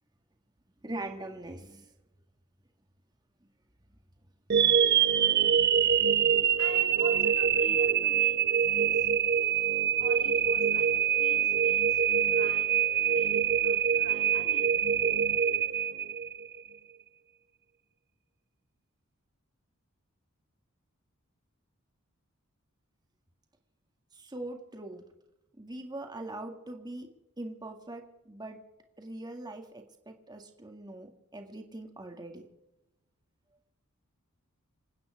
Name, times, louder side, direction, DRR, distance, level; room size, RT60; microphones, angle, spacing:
voice 1, 0.8-1.8 24.1-25.0 25.6-27.1 27.4-28.6 29.0-32.4, right 2 dB, 20° right, 3 dB, 1.9 m, -42 dB
sound 1, 4.5-16.6, right 8 dB, 50° right, 0.6 m, -25 dB
voice 2, 6.5-9.1 9.9-12.7 13.1-14.8, left 2 dB, 70° left, 1 dB, 5.2 m, -47 dB
28.0 x 9.4 x 4.9 m, 0.93 s
head